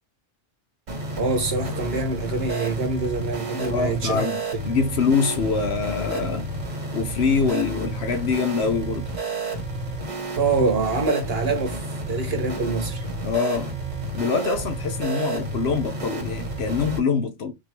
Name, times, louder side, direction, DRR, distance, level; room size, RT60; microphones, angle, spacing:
sound 1, 0.9-17.0, right 2 dB, 85° right, 1.7 m, -31 dB
voice 1, 1.2-4.3 10.4-11.8 12.1-13.0, right 3 dB, 55° right, 1.3 m, -25 dB
voice 2, 3.7-6.5 6.9-9.1 13.2-13.7 14.1-17.5, left 5 dB, 60° left, 1.0 m, -24 dB
3.8 x 2.7 x 4.3 m
omnidirectional pair, 1.2 m